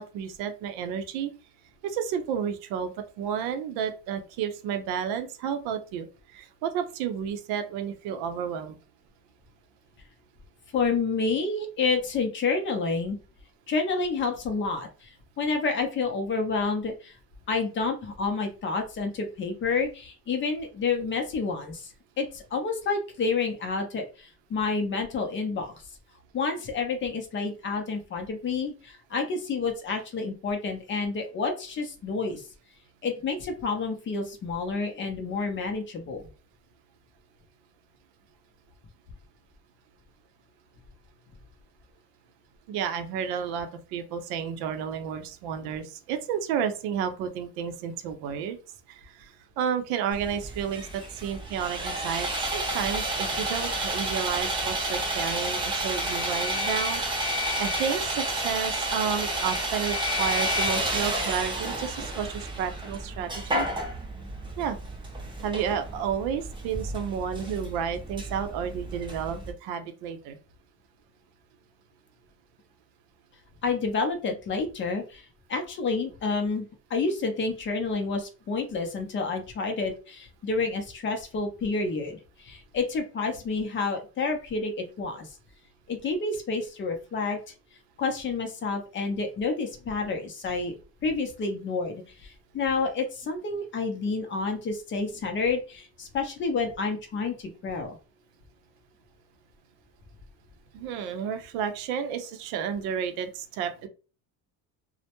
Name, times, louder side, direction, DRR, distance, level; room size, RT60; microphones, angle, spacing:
voice 1, 0.0-1.3 1.8-8.8 42.7-48.6 48.9-63.7 64.6-64.8 65.4-70.4 100.7-103.9, right 7 dB, 75° right, 7 dB, 0.6 m, -31 dB
voice 2, 10.7-13.2 13.7-15.1 15.4-17.1 17.5-21.9 22.2-25.7 26.3-32.4 33.0-36.2 73.6-85.3 85.9-87.4 88.0-90.7 91.0-98.0, left 4 dB, 30° left, 4 dB, 0.5 m, -29 dB
Sawing, 50.1-69.5, right 1 dB, 15° right, 0.6 m, -30 dB
2.1 x 2.1 x 2.8 m, 0.33 s
cardioid pair, 130°, 38 cm